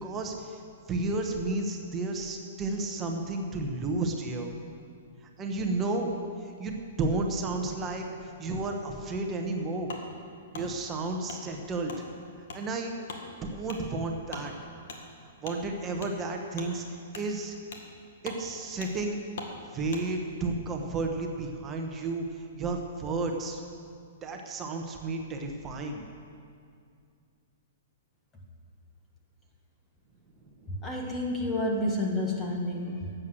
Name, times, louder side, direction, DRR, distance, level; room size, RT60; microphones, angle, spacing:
voice 1, 0.0-0.6 0.9-4.5 5.4-6.1 6.4-9.9 10.5-11.9 12.5-12.9 13.4-14.5 15.4-16.8 17.1-17.5 18.2-19.2 19.7-23.6 24.2-26.0, right 3 dB, 15° right, 2 dB, 1.1 m, -32 dB
Wood, 9.9-10.0 10.5-10.7 11.3-11.4 11.9-12.0 12.5-12.6 13.1-13.2 13.7-13.8 14.3-14.5 14.9-15.0 15.4-15.6 16.0-16.1 16.5-16.7 17.1-17.3 17.7-17.9 18.2-18.4 18.8-18.9 19.4-19.5 19.9-20.0, left 4 dB, 70° left, 1.9 m, -41 dB
voice 2, 30.7-33.1, left 1 dB, 15° left, 0 dB, 1.4 m, -30 dB
12.5 x 7.9 x 7.8 m, 2.3 s
hypercardioid pair, 155°, 0 cm